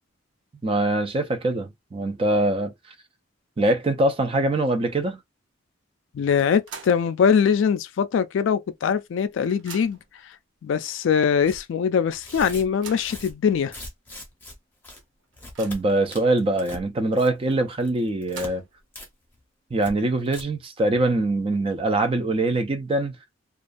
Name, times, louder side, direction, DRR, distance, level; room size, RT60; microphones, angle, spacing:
voice 1, 0.6-2.7 3.6-5.2 15.6-18.6 19.7-23.1, right 2 dB, 30° right, 0.4 m, -23 dB
voice 2, 6.1-10.0 10.6-13.7, left 7 dB, 75° left, 0.3 m, -22 dB
sound 1, 6.4-7.1 7.5-7.6 8.7-8.8 9.1-10.2 10.9-11.0 11.4-11.5 12.5-13.2 13.9-14.0 14.4-14.5 15.0-16.0 18.0-18.9, right 6 dB, 70° right, 0.7 m, -44 dB
Tearing, 11.4-11.6 12.1-14.5 14.8-15.0 15.3-15.8 16.1-16.8 17.1-17.5 17.8-18.5 18.9-19.1 19.3-19.4 19.8-19.9 20.2-20.4, left 1 dB, 10° left, 0.6 m, -41 dB
2.3 x 2.3 x 2.5 m
head